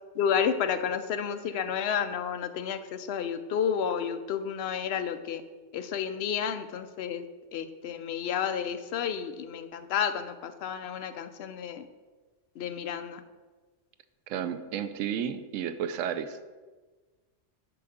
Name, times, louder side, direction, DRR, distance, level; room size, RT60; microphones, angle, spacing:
voice 1, 0.2-5.4 5.7-7.2 7.5-11.9 12.6-13.2, left 7 dB, 65° left, 10 dB, 0.8 m, -31 dB
voice 2, 14.3-16.5, right 8 dB, 90° right, 10 dB, 1.0 m, -32 dB
7.7 x 5.5 x 5.0 m, 1.3 s
omnidirectional pair, 1.3 m